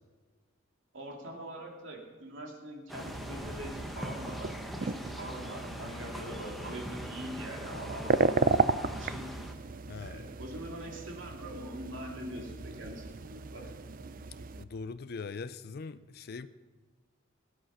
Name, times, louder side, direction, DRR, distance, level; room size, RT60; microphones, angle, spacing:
voice 1, 0.9-4.5 4.8-8.5 8.9-9.3 9.9-13.7, right 1 dB, 70° right, 0 dB, 2.7 m, -43 dB
sound 1, 2.9-9.5, equal, ahead, 1.0 m, -42 dB
sound 2, 3.0-14.6, right 4 dB, 45° right, 0.5 m, -34 dB
voice 2, 9.9-10.3 14.6-16.5, left 4 dB, 50° left, 12 dB, 0.4 m, -41 dB
18.0 x 8.8 x 5.7 m, 1.4 s
head